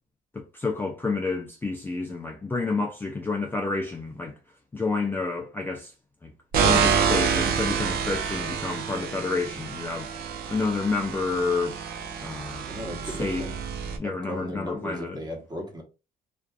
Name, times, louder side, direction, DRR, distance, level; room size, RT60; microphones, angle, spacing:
voice 1, 0.3-4.4 4.7-5.9 6.2-6.3 6.6-10.1 10.5-11.8 12.2-12.7 13.2-13.5 14.0-15.2, left 3 dB, 10° left, 0.3 m, -29 dB
sound 1, 6.5-14.0, right 6 dB, 65° right, 0.5 m, -27 dB
voice 2, 12.7-13.5 14.0-15.8, equal, 25° right, 1.0 m, -36 dB
2.5 x 2.4 x 2.3 m
cardioid pair, 110°, 17 cm